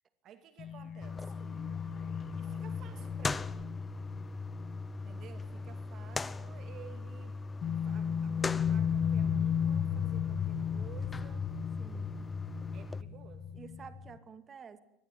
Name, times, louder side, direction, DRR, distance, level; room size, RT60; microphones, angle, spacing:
voice 1, 0.2-1.6 2.3-3.6 5.0-7.4 7.8-11.8 12.7-13.5, right 10 dB, 45° right, 9 dB, 2.0 m, -54 dB
sound 1, 0.6-6.0 6.3-6.4 7.6-14.2, left 8 dB, 40° left, 1.4 m, -35 dB
sound 2, 1.0-13.0, left 3 dB, 15° left, 0.9 m, -40 dB
voice 2, 11.8-12.3 13.5-14.8, right 6 dB, 25° right, 10 dB, 2.4 m, -50 dB
24.0 x 20.5 x 9.8 m, 0.80 s
supercardioid pair, 130°, 0 cm